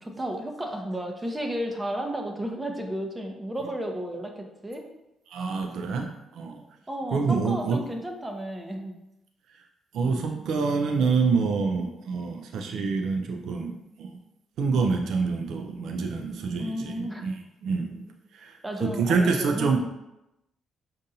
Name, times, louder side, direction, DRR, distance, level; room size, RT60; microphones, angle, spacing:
voice 1, 0.0-4.8 6.9-9.0 16.6-17.2 18.6-19.8, right 1 dB, 15° right, 2 dB, 0.7 m, -33 dB
voice 2, 5.3-6.6 7.1-7.8 9.9-14.1 14.6-18.0 18.3-19.8, right 4 dB, 75° right, 3 dB, 0.4 m, -27 dB
5.3 x 2.5 x 2.7 m, 0.91 s
cardioid pair, 90°, 0 cm